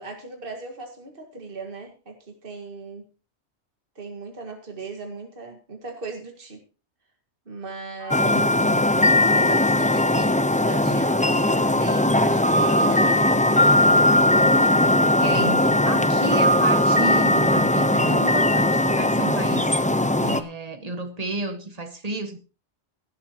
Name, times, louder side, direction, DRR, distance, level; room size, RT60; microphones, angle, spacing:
voice 1, 0.0-3.0 4.0-6.6 7.5-8.4 9.3-13.3, right 3 dB, 50° right, 2.2 m, -38 dB
voice 2, 8.0-8.8 15.2-19.7 20.2-22.4, right 2 dB, 35° right, 1.6 m, -32 dB
sound 1, 8.1-20.4, left 1 dB, 10° left, 0.6 m, -19 dB
17.0 x 12.5 x 2.9 m
omnidirectional pair, 1.2 m